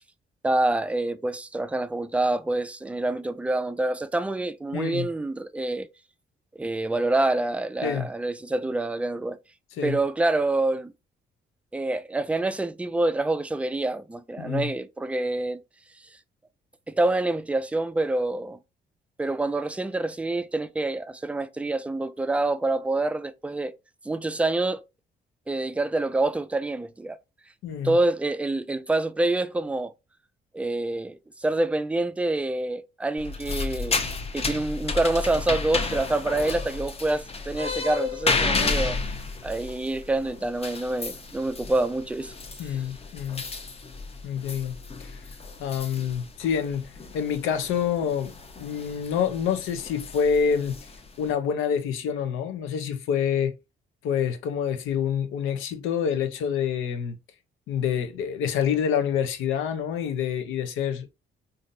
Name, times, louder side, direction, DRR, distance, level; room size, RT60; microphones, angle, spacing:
voice 1, 0.4-5.9 6.5-9.4 9.8-10.9 11.7-15.6 16.9-18.6 19.2-23.7 24.0-24.8 25.5-27.2 27.8-29.9 30.5-34.0 34.3-39.0 39.4-42.3 42.7-42.8, right 2 dB, 5° right, 0.3 m, -26 dB
voice 2, 4.7-5.1 7.8-8.1 9.8-10.0 14.4-14.7 27.6-28.0 42.6-43.4 44.2-44.7 45.0-45.2 45.6-48.3 48.6-50.8 51.2-53.5 54.0-57.2 57.7-61.1, left 7 dB, 90° left, 0.7 m, -27 dB
sound 1, 33.2-51.3, left 4 dB, 30° left, 0.8 m, -32 dB
3.7 x 2.6 x 2.6 m
cardioid pair, 90°, 20 cm